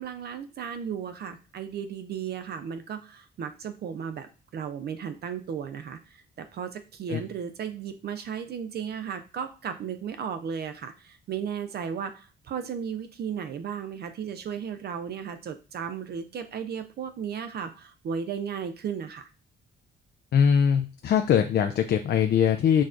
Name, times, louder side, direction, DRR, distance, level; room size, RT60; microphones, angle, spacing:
voice 1, 0.0-19.3, right 7 dB, 55° right, 9 dB, 0.4 m, -35 dB
voice 2, 20.3-22.8, left 8 dB, 55° left, 8 dB, 0.4 m, -22 dB
6.2 x 2.3 x 2.5 m, 0.34 s
cardioid pair, 90°, 20 cm